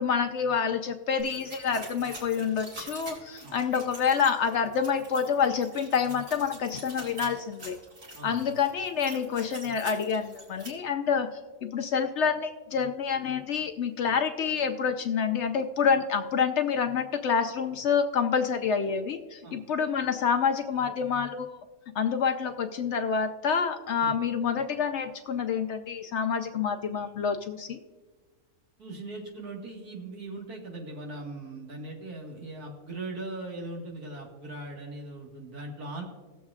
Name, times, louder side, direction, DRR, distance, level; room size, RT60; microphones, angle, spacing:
voice 1, 0.0-7.8 8.2-11.3 11.6-21.6 21.9-27.8, left 6 dB, 65° left, 6 dB, 0.7 m, -27 dB
sound 1, 1.2-10.7, right 1 dB, 60° right, 2.6 m, -45 dB
voice 2, 28.8-36.0, right 2 dB, 90° right, -1 dB, 2.2 m, -39 dB
18.5 x 7.2 x 2.4 m, 1.3 s
omnidirectional pair, 1.5 m